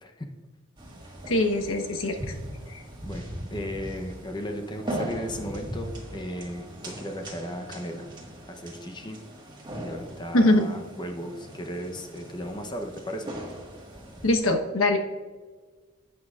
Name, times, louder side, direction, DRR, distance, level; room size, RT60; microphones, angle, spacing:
sound 1, 0.8-14.4, right 1 dB, 20° right, 1.6 m, -39 dB
voice 1, 1.3-2.1 2.7-2.8 10.3-10.7 14.2-15.0, left 1 dB, 85° left, 3 dB, 1.1 m, -22 dB
voice 2, 3.0-8.0 8.5-9.2 9.7-13.3, equal, 20° left, 4 dB, 0.7 m, -36 dB
11.0 x 8.3 x 2.4 m, 1.4 s
head